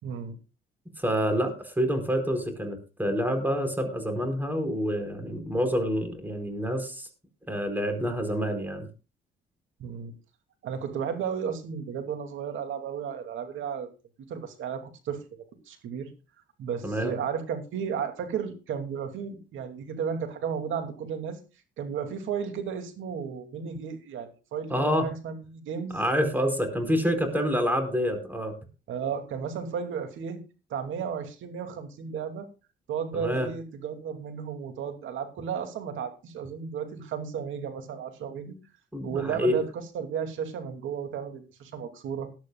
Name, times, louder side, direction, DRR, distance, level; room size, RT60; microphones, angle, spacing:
voice 1, 0.0-0.4 9.8-10.1 10.6-13.9 14.3-15.2 15.7-16.1 16.6-21.4 21.8-26.0 27.6-27.7 28.9-30.4 30.7-32.5 32.9-38.6 39.0-39.6 39.9-42.3, right 7 dB, 80° right, 6 dB, 2.6 m, -33 dB
voice 2, 1.0-7.1 7.5-8.9 16.8-17.1 24.7-25.1 25.9-28.5 33.1-33.5 38.9-39.6, equal, 10° right, 6 dB, 4.6 m, -27 dB
19.0 x 12.0 x 2.4 m, 0.31 s
cardioid pair, 90°, 20 cm